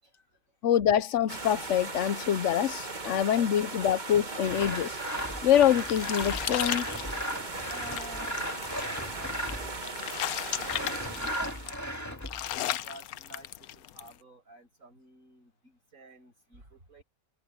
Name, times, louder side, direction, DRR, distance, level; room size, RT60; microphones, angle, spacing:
voice 1, 0.6-5.0 5.4-6.9, left 10 dB, 65° left, 0.9 m, -25 dB
sound 1, 1.3-11.8, right 3 dB, 30° right, 1.8 m, -38 dB
voice 2, 2.8-3.2 7.7-12.2 12.6-17.0, right 2 dB, 65° right, 8.0 m, -51 dB
Sawing, 4.4-9.8 10.6-12.6, equal, 10° left, 2.1 m, -36 dB
sound 2, 5.2-14.1, left 12 dB, 90° left, 1.2 m, -36 dB
omnidirectional pair, 1.5 m